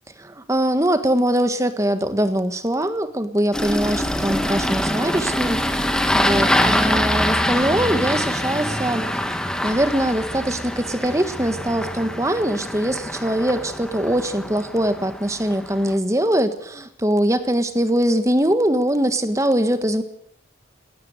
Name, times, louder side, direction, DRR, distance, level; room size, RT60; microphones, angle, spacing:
voice 1, 0.2-5.8 6.1-9.0 9.6-20.0, right 1 dB, 15° right, 10 dB, 1.6 m, -22 dB
Engine starting, 3.5-16.0, left 1 dB, 5° left, 1.5 m, -24 dB
19.5 x 18.0 x 8.2 m, 0.72 s
head